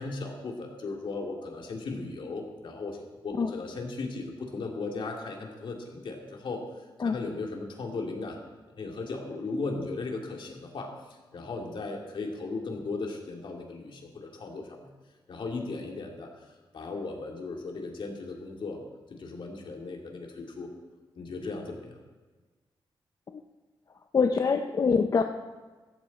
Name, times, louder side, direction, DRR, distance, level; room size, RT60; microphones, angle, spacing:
voice 1, 0.0-3.0 3.2-8.4 8.8-14.9 15.3-18.8 19.1-20.7 21.1-22.0, left 3 dB, 70° left, 0 dB, 2.8 m, -37 dB
voice 2, 24.1-25.2, left 5 dB, 45° left, 5 dB, 0.7 m, -24 dB
16.0 x 14.5 x 4.3 m, 1.3 s
wide cardioid pair, 130°, 9 cm